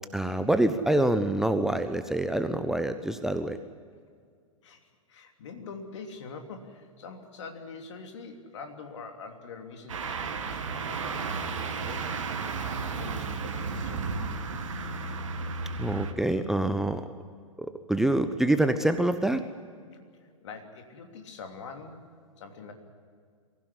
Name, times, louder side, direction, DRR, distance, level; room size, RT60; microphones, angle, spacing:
voice 1, 0.1-3.6 15.8-17.0 17.6-19.4, right 1 dB, ahead, 9 dB, 0.8 m, -26 dB
voice 2, 5.1-14.3 20.4-22.7, left 4 dB, 55° left, 4 dB, 3.1 m, -44 dB
sound 1, 9.9-16.1, right 4 dB, 65° right, 2.1 m, -33 dB
23.5 x 15.5 x 10.0 m, 2.1 s
figure-of-eight pair, 105°, 18 cm